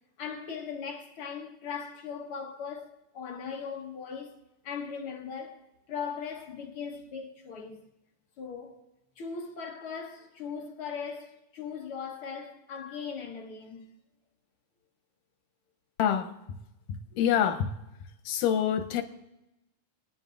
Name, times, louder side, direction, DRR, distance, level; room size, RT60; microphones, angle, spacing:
voice 1, 0.2-4.4 4.6-7.8 8.4-8.8 9.2-13.9, left 6 dB, 60° left, 1.6 m, -39 dB
voice 2, 16.0-16.3 16.9-17.7 18.3-19.0, left 9 dB, 90° left, 2.4 m, -26 dB
26.5 x 9.6 x 2.5 m
omnidirectional pair, 3.6 m